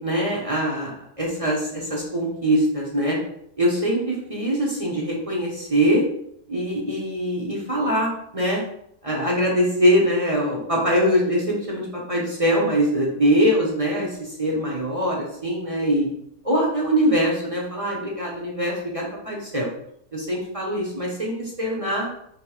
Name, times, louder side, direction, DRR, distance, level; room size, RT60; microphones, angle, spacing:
voice 1, 0.0-3.2 3.6-6.0 6.5-8.6 9.0-16.1 16.4-19.7 20.1-22.1, equal, 30° right, -4 dB, 0.8 m, -23 dB
3.4 x 3.1 x 4.7 m, 0.73 s
omnidirectional pair, 1.6 m